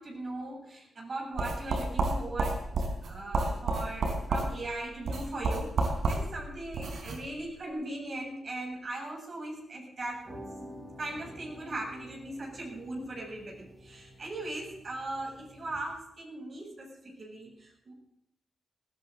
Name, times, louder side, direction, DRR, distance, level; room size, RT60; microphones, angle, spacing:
voice 1, 0.0-2.7 3.0-10.3 11.0-17.9, right 2 dB, 50° right, -1 dB, 7.7 m, -39 dB
sound 1, 1.4-7.2, right 3 dB, 75° right, 4.0 m, -31 dB
sound 2, 10.0-16.0, equal, 25° right, 7.5 m, -49 dB
19.5 x 16.0 x 3.9 m, 0.77 s
cardioid pair, 90°, 0 cm